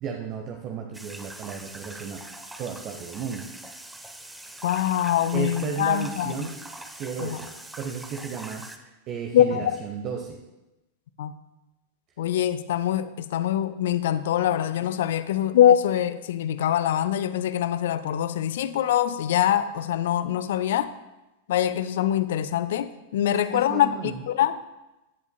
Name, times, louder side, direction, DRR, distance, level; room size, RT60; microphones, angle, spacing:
voice 1, 0.0-2.2 2.6-3.5 5.3-6.5 6.8-7.5 7.8-10.4 23.3-24.2, right 6 dB, 35° right, 3 dB, 1.0 m, -34 dB
sound 1, 0.9-8.8, right 1 dB, 5° right, 0.8 m, -42 dB
voice 2, 4.6-6.5 7.2-7.4 9.3-9.8 11.2-11.3 12.2-20.9 21.5-24.6, left 11 dB, 55° left, 14 dB, 0.6 m, -24 dB
16.5 x 11.0 x 2.3 m, 1.0 s
figure-of-eight pair, 90°, 0 cm